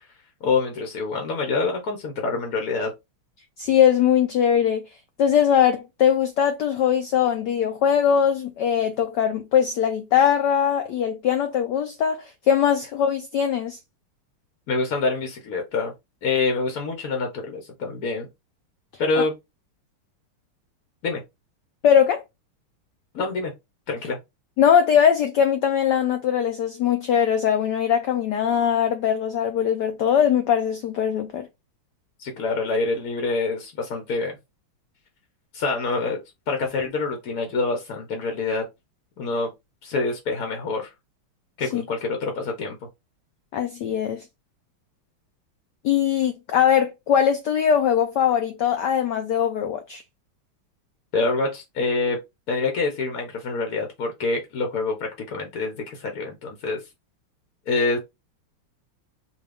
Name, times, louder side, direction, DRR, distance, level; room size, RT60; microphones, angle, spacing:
voice 1, 0.4-2.9 14.7-15.9 16.2-18.3 19.0-19.3 21.0-21.2 23.1-23.5 23.9-24.2 32.2-34.4 35.5-36.2 36.5-38.6 39.2-39.5 39.8-40.9 41.6-42.8 51.1-52.2 52.5-56.8 57.7-58.0, left 3 dB, 55° left, 1.1 m, -26 dB
voice 2, 3.6-4.8 5.2-13.8 19.2-19.3 21.8-22.2 24.6-31.5 41.7-41.8 43.5-44.2 45.8-50.0, left 8 dB, 85° left, 0.9 m, -21 dB
5.0 x 2.4 x 3.4 m
omnidirectional pair, 2.4 m